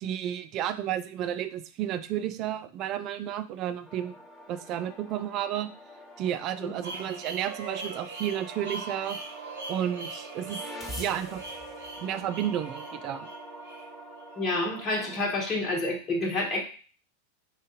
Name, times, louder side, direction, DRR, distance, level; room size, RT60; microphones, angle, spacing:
voice 1, 0.0-4.2 4.5-5.7 6.2-9.2 9.7-10.6 11.0-11.6 12.0-13.3, right 10 dB, 35° right, 10 dB, 0.4 m, -32 dB
sound 1, 3.8-15.2, equal, 10° left, 1.7 m, -45 dB
sound 2, 6.8-14.7, right 4 dB, 60° right, 0.8 m, -41 dB
voice 2, 14.4-16.6, left 2 dB, 25° left, -1 dB, 1.2 m, -28 dB
5.0 x 2.6 x 3.8 m, 0.40 s
figure-of-eight pair, 90°, 0 cm